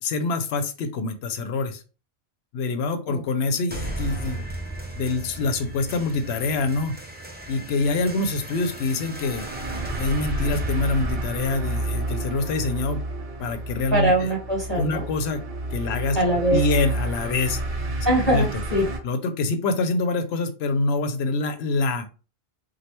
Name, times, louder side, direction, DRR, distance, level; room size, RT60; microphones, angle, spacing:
voice 1, 0.0-1.8 2.5-4.4 5.0-7.0 7.5-9.5 10.0-13.0 13.4-14.3 14.8-15.4 15.7-16.2 16.5-17.6 18.3-18.5 19.0-22.1, left 3 dB, 75° left, 10 dB, 0.8 m, -25 dB
sound 1, 3.7-12.7, right 1 dB, 15° right, 0.3 m, -35 dB
sound 2, 9.1-19.0, right 1 dB, 60° right, 0.9 m, -31 dB
voice 2, 13.9-15.0 16.1-16.6 18.0-18.8, right 1 dB, 10° left, -4 dB, 1.1 m, -22 dB
3.2 x 2.2 x 2.9 m, 0.34 s
omnidirectional pair, 1.1 m